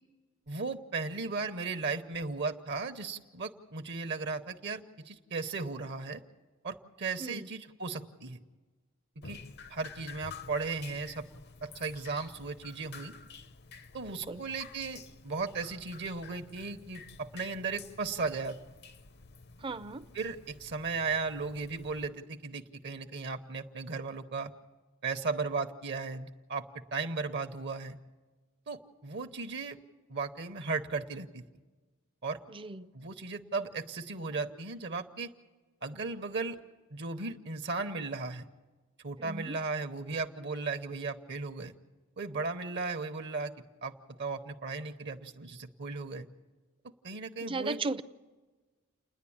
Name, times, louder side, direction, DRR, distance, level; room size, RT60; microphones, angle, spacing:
voice 1, 0.5-6.2 6.6-8.4 9.2-9.4 9.7-11.2 11.6-13.1 13.9-18.6 20.1-24.5 25.0-28.0 28.7-29.8 30.1-31.4 32.2-32.4 32.9-35.3 35.8-36.6 36.9-38.5 39.0-41.7 42.2-43.5 43.8-43.9 44.2-46.3 47.0-47.8, right 4 dB, 55° right, 0.9 m, -36 dB
Drip, 9.2-22.1, left 5 dB, 50° left, 0.7 m, -51 dB
voice 2, 14.1-14.4 19.6-20.1 32.5-32.9 39.2-39.6 47.4-48.0, right 3 dB, 25° right, 0.5 m, -36 dB
29.5 x 10.5 x 8.6 m
head